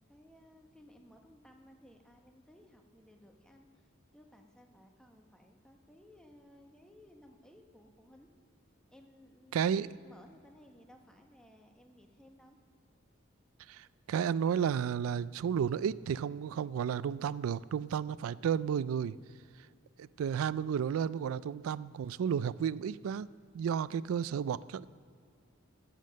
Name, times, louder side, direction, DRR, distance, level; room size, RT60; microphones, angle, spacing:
voice 1, 0.1-8.3 8.9-12.6, left 1 dB, 5° left, 3 dB, 0.9 m, -59 dB
voice 2, 9.5-9.9 13.7-19.2 20.0-23.3 23.5-24.9, right 8 dB, 90° right, 18 dB, 0.3 m, -32 dB
14.5 x 7.5 x 6.4 m, 2.3 s
head